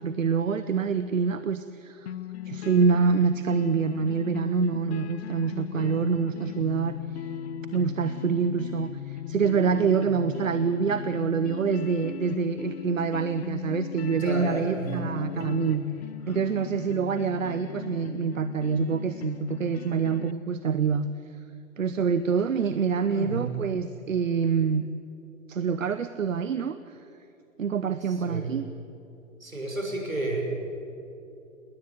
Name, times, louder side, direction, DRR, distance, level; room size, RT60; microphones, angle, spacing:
voice 1, 0.0-2.1 2.4-7.0 7.7-15.9 16.3-21.1 21.8-24.9 25.5-27.0 27.6-28.7, right 6 dB, 70° right, 12 dB, 0.9 m, -26 dB
sound 1, 2.1-20.3, left 8 dB, 50° left, 1.0 m, -37 dB
voice 2, 14.1-14.9 15.3-15.5 16.3-16.4 22.9-23.4 28.1-28.5 29.4-30.7, right 2 dB, 85° right, 0 dB, 6.0 m, -32 dB
20.0 x 19.0 x 9.4 m, 2.7 s
figure-of-eight pair, 110°, 40 cm